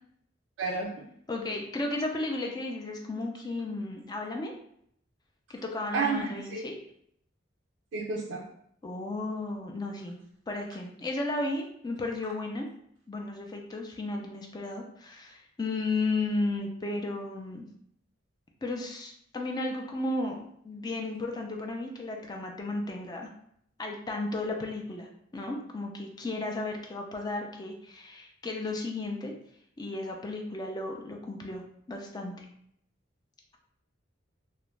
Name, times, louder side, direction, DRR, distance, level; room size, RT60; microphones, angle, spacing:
voice 1, 0.6-1.1 5.9-6.7 7.9-8.4, right 4 dB, 85° right, -2 dB, 0.4 m, -31 dB
voice 2, 1.3-4.5 5.5-6.8 8.8-10.2 10.5-12.7 13.1-17.6 18.6-23.3 23.8-29.3 29.8-31.6 31.9-32.5, left 2 dB, 20° left, 1 dB, 0.3 m, -34 dB
2.3 x 2.0 x 3.1 m, 0.69 s
head